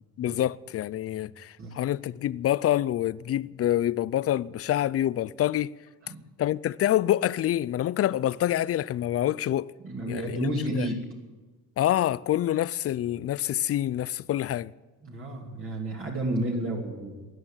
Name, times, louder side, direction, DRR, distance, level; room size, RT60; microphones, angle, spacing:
voice 1, 0.2-5.7 6.4-9.7 10.1-10.9 11.8-14.7, left 12 dB, 40° left, 0.4 m, -26 dB
voice 2, 9.8-11.0 15.0-17.3, right 1 dB, 35° right, 2.8 m, -31 dB
14.5 x 9.6 x 9.7 m
cardioid pair, 120°, 37 cm